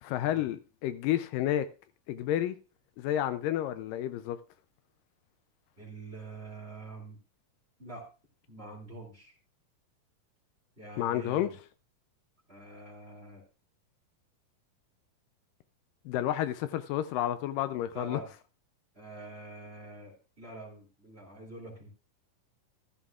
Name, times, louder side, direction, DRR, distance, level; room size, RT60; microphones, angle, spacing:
voice 1, 0.0-1.7 2.1-2.6 3.0-4.4 11.0-11.5 16.1-18.2, left 12 dB, 80° left, 2.2 m, -30 dB
voice 2, 5.8-7.2 7.8-8.1 8.5-9.3 10.8-11.5 12.5-13.5 17.9-18.3 18.9-21.9, right 2 dB, 20° right, 2.6 m, -46 dB
14.5 x 12.5 x 2.4 m
omnidirectional pair, 3.9 m